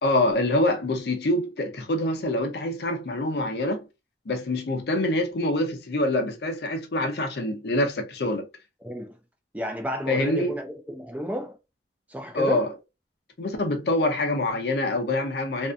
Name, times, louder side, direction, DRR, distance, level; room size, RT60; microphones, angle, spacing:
voice 1, 0.0-3.8 4.3-8.5 10.1-10.6 12.3-12.7 13.4-15.7, left 1 dB, 60° left, 0.6 m, -25 dB
voice 2, 8.8-9.2 9.5-11.6 12.1-12.7, equal, 10° right, 0.4 m, -32 dB
2.7 x 2.4 x 2.2 m
head